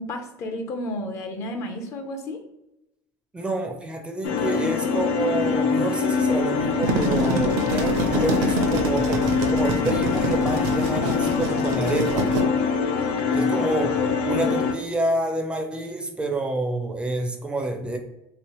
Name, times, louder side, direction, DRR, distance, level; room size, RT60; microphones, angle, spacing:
voice 1, 0.0-2.4 13.2-13.7, left 1 dB, 40° left, 5 dB, 0.6 m, -32 dB
voice 2, 3.3-12.3 13.3-14.0 14.2-18.0, right 1 dB, 15° right, 4 dB, 0.5 m, -28 dB
sound 1, 4.2-14.7, left 5 dB, 85° left, 0.6 m, -24 dB
sound 2, 6.6-12.4, right 2 dB, 70° right, 0.6 m, -27 dB
3.1 x 3.0 x 3.0 m, 0.89 s
supercardioid pair, 130°, 7 cm